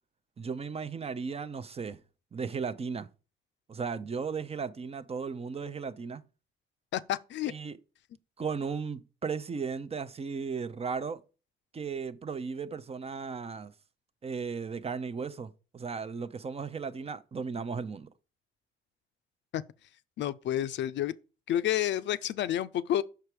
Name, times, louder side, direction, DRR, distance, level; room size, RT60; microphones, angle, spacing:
voice 1, 0.4-2.0 2.3-3.1 3.7-6.2 7.5-7.8 8.4-11.2 11.7-13.7 14.2-18.1, right 5 dB, 30° right, 0.6 m, -36 dB
voice 2, 6.9-7.5 19.5-19.6 20.2-21.1 21.5-23.0, left 12 dB, 65° left, 0.4 m, -29 dB
5.8 x 4.7 x 4.8 m
cardioid pair, 90°, 20 cm